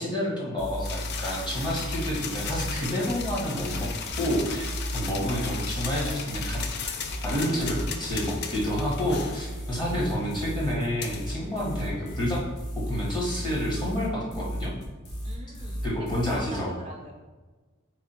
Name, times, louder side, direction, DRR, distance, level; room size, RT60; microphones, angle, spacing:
voice 1, 0.0-3.9 4.2-6.6 7.2-12.4 12.8-14.7 15.8-16.7, equal, 20° left, -4 dB, 1.2 m, -29 dB
sound 1, 0.6-16.4, equal, 70° left, 1.2 m, -34 dB
sound 2, 0.8-12.6, left 6 dB, 50° left, 0.4 m, -37 dB
voice 2, 15.2-17.1, right 2 dB, 25° right, -1 dB, 0.5 m, -42 dB
3.5 x 3.4 x 4.2 m, 1.3 s
head